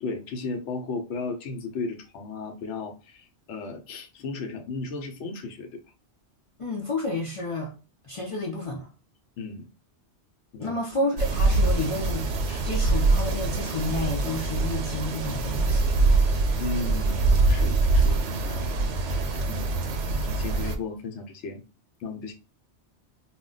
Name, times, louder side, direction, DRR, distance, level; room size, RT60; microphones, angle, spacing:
voice 1, 0.0-5.8 9.4-9.7 10.5-10.8 12.5-12.7 16.6-18.8 19.5-19.9 20.2-21.6 22.0-22.3, left 4 dB, 85° left, 0.9 m, -35 dB
voice 2, 6.6-7.7 8.0-8.9 10.6-12.3 12.6-15.9, left 2 dB, 45° left, 0.4 m, -30 dB
sound 1, 11.2-20.8, right 3 dB, 85° right, 0.9 m, -24 dB
2.2 x 2.2 x 3.7 m
omnidirectional pair, 1.2 m